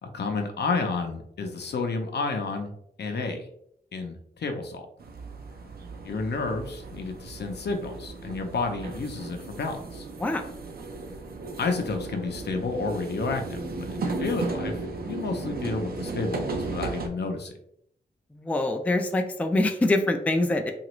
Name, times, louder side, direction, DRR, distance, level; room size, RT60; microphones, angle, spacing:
voice 1, 0.0-3.5 3.9-4.8 6.0-10.1 11.6-14.7 15.1-17.5, left 3 dB, 70° left, 4 dB, 0.6 m, -31 dB
sound 1, 5.0-17.1, right 3 dB, 60° right, 0.5 m, -35 dB
voice 2, 18.3-20.7, left 2 dB, 10° left, 5 dB, 0.3 m, -24 dB
2.9 x 2.4 x 3.0 m, 0.69 s
wide cardioid pair, 95°, 18 cm